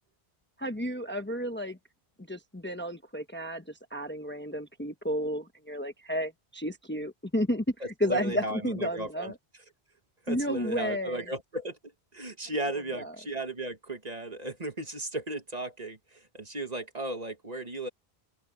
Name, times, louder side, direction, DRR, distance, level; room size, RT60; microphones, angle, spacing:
voice 1, 0.6-1.8 2.3-7.7 8.0-9.3 10.3-11.3 12.9-13.1, equal, 10° left, 1.0 m, -32 dB
voice 2, 7.8-9.3 10.3-11.8 12.1-17.9, right 1 dB, 40° right, 1.8 m, -35 dB
open air
omnidirectional pair, 1.1 m